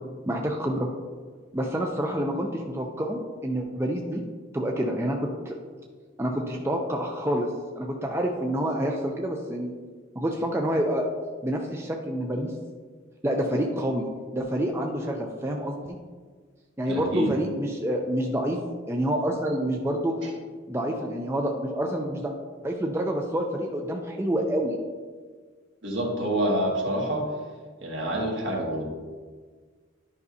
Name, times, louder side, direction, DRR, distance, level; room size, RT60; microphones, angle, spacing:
voice 1, 0.3-0.9 1.5-4.2 4.5-5.6 6.2-9.7 10.2-11.1 11.4-12.5 13.2-14.0 14.3-16.0 16.8-18.6 18.9-20.2 20.7-22.3 22.6-24.8, right 1 dB, 15° right, 1 dB, 0.5 m, -28 dB
voice 2, 16.9-17.3 20.2-20.3 25.8-27.2 27.8-28.8, right 1 dB, 65° right, -2 dB, 1.6 m, -27 dB
11.0 x 5.3 x 2.7 m, 1.5 s
head